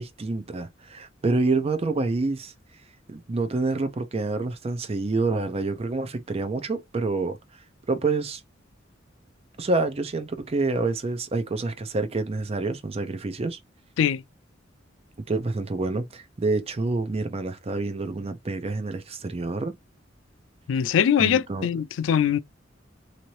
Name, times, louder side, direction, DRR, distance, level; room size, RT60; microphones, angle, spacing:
voice 1, 0.0-2.5 3.1-7.4 7.9-8.4 9.6-13.6 15.3-19.7 21.2-21.7, right 3 dB, 30° right, 0.4 m, -27 dB
voice 2, 20.7-22.4, left 8 dB, 80° left, 0.3 m, -22 dB
2.8 x 2.5 x 3.0 m
head